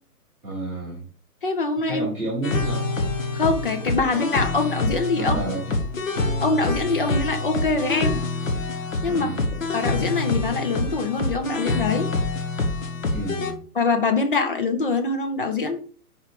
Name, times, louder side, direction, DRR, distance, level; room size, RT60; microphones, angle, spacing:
voice 1, 0.4-1.1 1.9-2.9 5.1-5.8 9.1-9.5 13.1-13.6, right 1 dB, 5° right, -12 dB, 0.6 m, -30 dB
voice 2, 1.4-2.1 3.3-5.4 6.4-8.2 9.0-12.1 13.7-15.8, left 3 dB, 35° left, 6 dB, 0.7 m, -24 dB
sound 1, 2.4-13.5, left 3 dB, 55° left, 1.2 m, -26 dB
4.7 x 4.0 x 5.0 m, 0.42 s
figure-of-eight pair, 130°, 46 cm